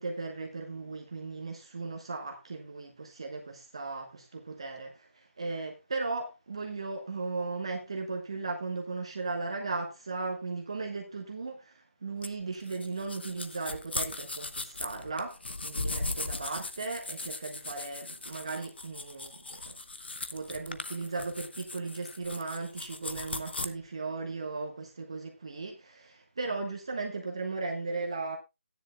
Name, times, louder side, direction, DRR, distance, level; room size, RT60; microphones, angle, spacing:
voice 1, 0.0-19.8 20.3-28.4, right 3 dB, 25° right, 1.1 m, -37 dB
sound 1, 12.2-23.7, left 2 dB, 50° left, 0.9 m, -38 dB
14.5 x 10.0 x 2.3 m
figure-of-eight pair, 180°, 7 cm